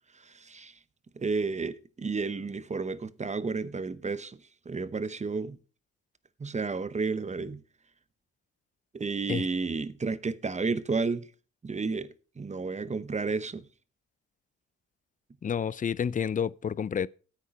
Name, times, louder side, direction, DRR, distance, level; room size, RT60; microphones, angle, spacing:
voice 1, 0.2-0.8 1.2-4.4 4.6-5.6 6.4-7.6 8.9-11.3 11.6-12.1 12.4-13.7, right 4 dB, 25° right, 0.9 m, -31 dB
voice 2, 15.4-17.1, left 7 dB, 25° left, 0.4 m, -29 dB
9.9 x 8.4 x 5.3 m
cardioid pair, 90°, 30 cm